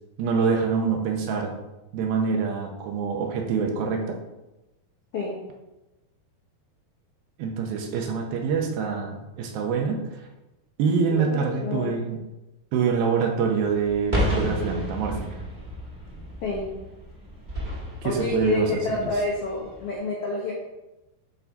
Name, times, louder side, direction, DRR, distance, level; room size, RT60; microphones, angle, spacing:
voice 1, 0.2-1.5 1.9-4.2 7.4-10.0 10.8-12.2 12.7-15.4 18.0-19.1, right 5 dB, 80° right, 2 dB, 2.7 m, -25 dB
voice 2, 11.1-11.9 16.4-16.7 18.0-20.5, left 3 dB, 80° left, -3 dB, 1.3 m, -29 dB
sound 1, 13.6-19.9, equal, 35° right, 0.6 m, -32 dB
9.7 x 3.8 x 4.0 m, 0.99 s
omnidirectional pair, 4.4 m